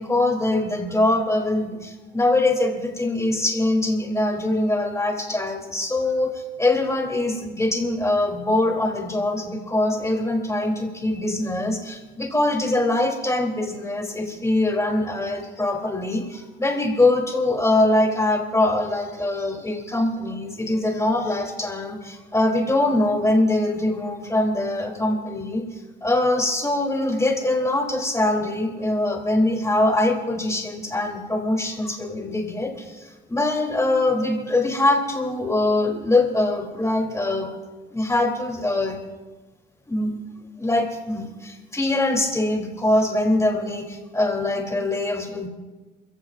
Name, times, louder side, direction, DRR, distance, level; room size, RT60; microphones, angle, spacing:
voice 1, 0.0-25.6 26.0-37.5 37.9-39.0 39.9-40.1 40.6-45.5, left 2 dB, 15° left, 1 dB, 3.3 m, -23 dB
29.0 x 16.0 x 2.6 m, 1.2 s
cardioid pair, 90°, 20 cm